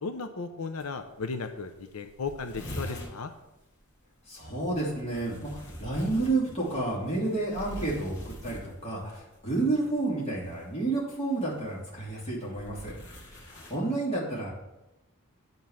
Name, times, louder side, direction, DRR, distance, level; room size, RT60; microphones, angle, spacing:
voice 1, 0.0-3.3, left 4 dB, 85° left, 7 dB, 0.7 m, -35 dB
sound 1, 0.8-0.9 1.2-1.3 1.6-1.7 1.9-3.2 4.7-9.1 10.4-10.7 11.5-13.7, equal, 55° left, 2.1 m, -42 dB
voice 2, 4.3-12.9 13.4-14.5, right 2 dB, 30° left, -5 dB, 2.9 m, -30 dB
9.4 x 3.9 x 7.2 m, 0.95 s
head